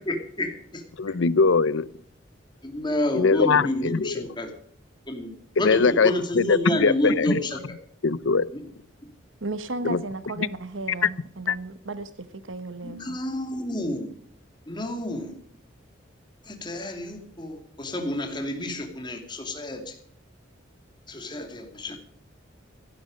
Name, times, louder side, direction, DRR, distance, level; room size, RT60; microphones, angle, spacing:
voice 1, 0.0-0.8 2.6-4.5 5.1-5.3 5.6-7.6 8.5-8.6 12.8-14.1 14.7-15.3 16.5-19.9 21.1-22.0, left 1 dB, 25° left, 4 dB, 2.6 m, -29 dB
voice 2, 1.0-1.9 3.1-4.1 5.6-7.4 8.0-8.5 9.8-10.0 11.5-11.6, left 4 dB, 80° left, 20 dB, 0.6 m, -21 dB
voice 3, 9.4-13.2, right 2 dB, 80° right, 13 dB, 1.1 m, -35 dB
15.0 x 12.0 x 5.2 m, 0.62 s
head